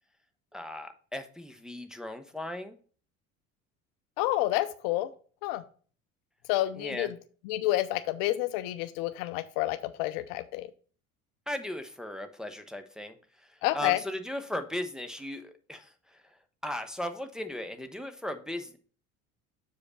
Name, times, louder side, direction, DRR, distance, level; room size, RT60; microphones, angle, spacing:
voice 1, 0.5-2.8 6.7-7.1 11.5-13.2 13.7-16.2 16.6-18.8, left 1 dB, ahead, 6 dB, 0.7 m, -37 dB
voice 2, 4.2-5.1 5.4-5.6 6.5-7.2 7.4-10.7 13.6-14.0, left 16 dB, 55° left, 13 dB, 0.6 m, -29 dB
7.1 x 4.9 x 4.0 m, 0.42 s
figure-of-eight pair, 65°, 42 cm